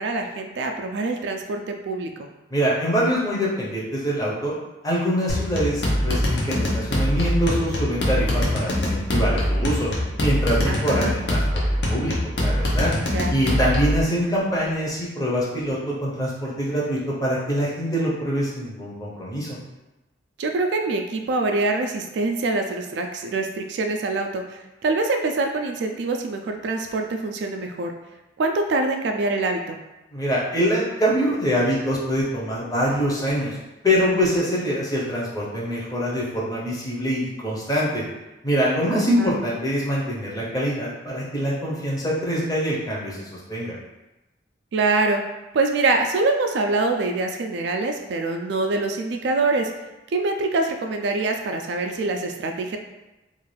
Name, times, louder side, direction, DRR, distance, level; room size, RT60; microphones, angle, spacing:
voice 1, 0.0-2.3 10.7-11.1 13.1-13.3 20.4-27.9 28.4-29.8 38.9-39.3 44.7-45.2 45.5-49.7 50.1-52.8, right 3 dB, 70° right, 4 dB, 0.3 m, -24 dB
voice 2, 2.5-4.5 4.8-9.9 10.2-11.6 11.9-12.2 12.4-12.9 13.3-19.6 30.1-33.6 33.8-38.0 38.4-43.7, equal, 20° left, -5 dB, 0.6 m, -24 dB
sound 1, 5.3-14.0, left 1 dB, 70° left, 0.6 m, -23 dB
2.5 x 2.3 x 3.1 m, 1.0 s
head